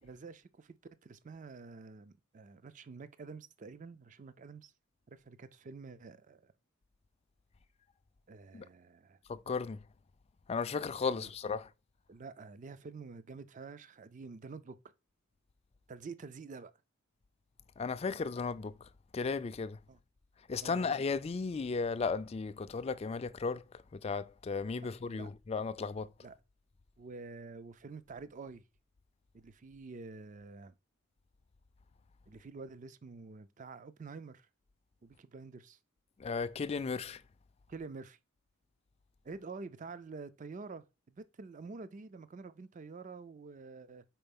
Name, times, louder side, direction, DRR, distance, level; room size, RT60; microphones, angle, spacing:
voice 1, 0.0-0.8 1.0-4.7 5.1-6.5 8.3-9.2 11.2-11.3 12.1-14.9 15.9-16.7 19.9-20.0 20.6-20.8 24.7-25.3 26.2-26.4 27.0-28.6 29.3-30.7 32.3-34.5 35.0-35.8 37.7-38.2 39.2-44.0, right 4 dB, 35° right, 0.4 m, -48 dB
voice 2, 9.3-9.8 10.5-11.7 17.8-18.8 19.1-19.8 20.5-23.6 23.9-26.1 36.2-37.2, left 4 dB, 30° left, 0.3 m, -35 dB
4.7 x 4.4 x 5.3 m
head